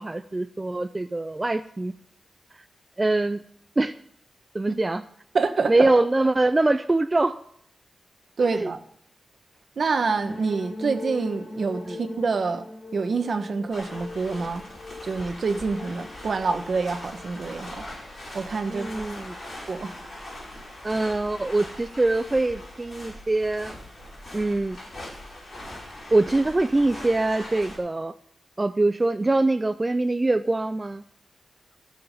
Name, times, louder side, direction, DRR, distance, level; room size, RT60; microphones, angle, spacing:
voice 1, 0.0-1.9 3.0-3.4 3.8-3.9 4.5-5.0 5.7-7.3 8.4-8.7 11.9-12.0 18.7-19.3 20.8-23.7 24.3-24.8 26.1-28.1 28.6-31.0, right 2 dB, 20° right, 9 dB, 0.4 m, -23 dB
voice 2, 5.3-5.9 8.4-8.8 9.8-12.6 12.9-14.7 15.0-17.9 18.3-18.9 19.7-19.9, right 4 dB, 55° right, 8 dB, 1.2 m, -26 dB
sound 1, 10.0-17.7, left 3 dB, 65° left, 3.5 m, -40 dB
sound 2, 13.7-27.8, left 1 dB, 45° left, 5.3 m, -41 dB
16.0 x 7.0 x 5.5 m, 0.66 s
wide cardioid pair, 125°, 0 cm